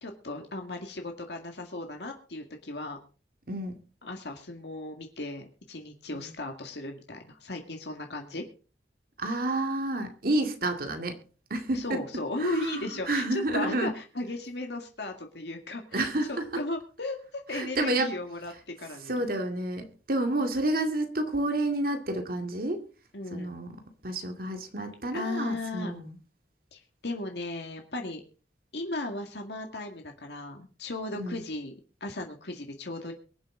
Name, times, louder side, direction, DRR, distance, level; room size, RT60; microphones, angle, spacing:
voice 1, 0.0-3.0 4.0-8.4 11.7-13.2 13.5-18.5 18.8-19.3 23.1-23.6 25.1-25.9 26.7-28.2 28.7-31.7 32.0-33.1, left 2 dB, 70° left, 2.0 m, -36 dB
voice 2, 3.5-3.8 6.1-6.3 9.2-11.2 11.5-12.0 12.4-13.9 15.9-16.6 17.5-18.2 19.0-22.8 23.3-26.2 31.1-31.4, right 2 dB, 55° right, 2.2 m, -30 dB
23.5 x 7.8 x 3.8 m
head